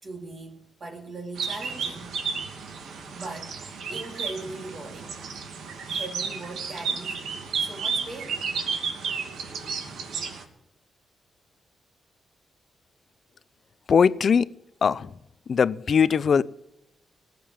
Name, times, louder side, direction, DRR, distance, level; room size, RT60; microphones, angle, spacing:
voice 1, 0.0-2.1 3.1-5.1 5.9-8.4, right 2 dB, 40° right, 1 dB, 3.2 m, -40 dB
sound 1, 1.4-10.4, right 5 dB, 80° right, 2.7 m, -32 dB
voice 2, 13.9-14.5 14.8-15.1 15.5-16.4, left 6 dB, 50° left, 18 dB, 0.6 m, -20 dB
19.5 x 7.8 x 8.7 m, 0.83 s
cardioid pair, 125°, 0 cm